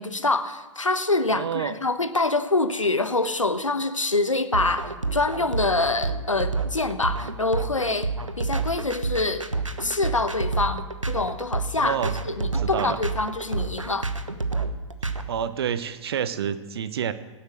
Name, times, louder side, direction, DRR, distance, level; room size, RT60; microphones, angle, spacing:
voice 1, 0.0-8.1 8.4-9.4 9.8-14.1, left 2 dB, 85° left, 11 dB, 1.1 m, -25 dB
voice 2, 1.3-1.7 11.7-12.1 12.4-13.0 15.3-17.1, right 8 dB, 55° right, 13 dB, 0.9 m, -28 dB
sound 1, 4.5-15.2, right 3 dB, 85° right, 1.1 m, -29 dB
17.5 x 8.2 x 6.4 m, 1.2 s
figure-of-eight pair, 115°, 16 cm